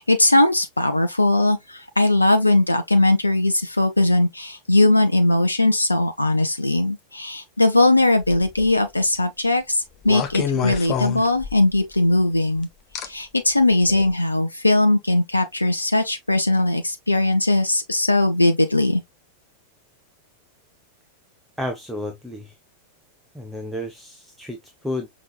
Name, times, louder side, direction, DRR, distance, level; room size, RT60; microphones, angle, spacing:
voice 1, 0.0-12.7 13.0-19.0, left 2 dB, 85° left, 0.6 m, -19 dB
sound 1, 8.2-8.7 10.0-11.8 12.9-13.1 13.9-14.1, left 8 dB, 35° left, 0.8 m, -27 dB
voice 2, 21.6-22.5 23.3-25.1, left 1 dB, ahead, 0.7 m, -31 dB
5.9 x 3.0 x 2.3 m
figure-of-eight pair, 90°, 0 cm